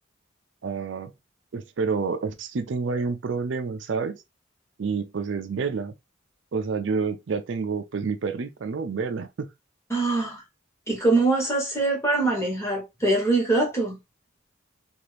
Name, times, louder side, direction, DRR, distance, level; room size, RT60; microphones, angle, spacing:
voice 1, 0.6-1.1 1.5-4.2 4.8-5.9 6.5-9.5, right 5 dB, 65° right, 0.4 m, -28 dB
voice 2, 9.9-10.4 10.9-14.0, right 2 dB, 15° left, 1.1 m, -23 dB
2.8 x 2.4 x 3.3 m
head